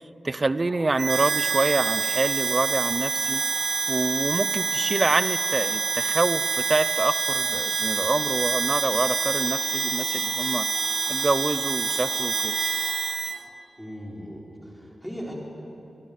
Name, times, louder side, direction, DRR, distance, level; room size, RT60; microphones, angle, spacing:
voice 1, 0.2-3.4 3.9-6.4 6.7-10.7 11.1-12.5, right 3 dB, 25° right, 14 dB, 0.7 m, -26 dB
sound 1, 0.7-13.0, left 2 dB, 85° left, 5.2 m, -44 dB
Harmonica, 1.0-13.4, right 5 dB, 75° right, 1.2 m, -27 dB
voice 2, 13.8-15.3, equal, ahead, -3 dB, 4.1 m, -38 dB
25.5 x 20.0 x 9.5 m, 2.9 s
wide cardioid pair, 170°, 0 cm